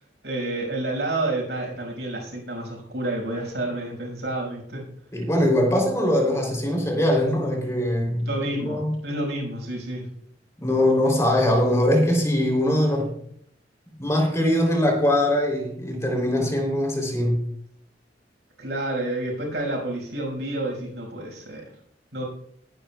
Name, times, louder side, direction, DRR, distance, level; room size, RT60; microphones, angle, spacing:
voice 1, 0.2-4.8 8.2-10.1 18.6-21.6 22.1-22.2, right 2 dB, 80° right, -1 dB, 5.5 m, -29 dB
voice 2, 5.1-9.0 10.6-13.1 14.0-17.4, left 1 dB, 15° left, 0 dB, 3.2 m, -22 dB
21.0 x 10.0 x 2.3 m, 0.67 s
head